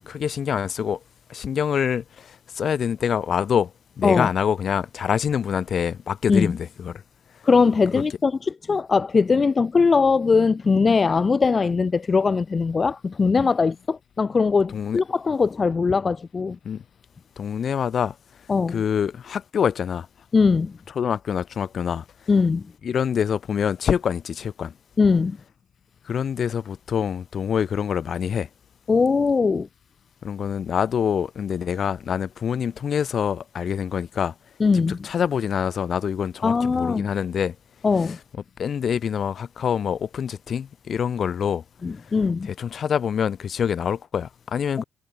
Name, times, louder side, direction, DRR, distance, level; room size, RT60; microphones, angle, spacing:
voice 1, 0.1-1.0 1.3-3.7 4.0-7.0 7.9-8.0 14.7-15.0 16.6-16.8 17.4-18.1 18.7-20.1 20.9-22.0 22.8-24.7 26.0-28.5 30.2-34.3 34.7-37.5 38.0-38.1 38.6-41.6 42.4-44.8, left 7 dB, 55° left, 3.3 m, -25 dB
voice 2, 7.4-16.6 18.5-18.8 20.3-20.7 22.3-22.6 25.0-25.4 28.9-29.7 34.6-35.1 36.4-37.1 37.8-38.2 41.8-42.5 44.8-44.9, left 4 dB, 35° left, 2.2 m, -20 dB
cardioid pair, 90°, 0 cm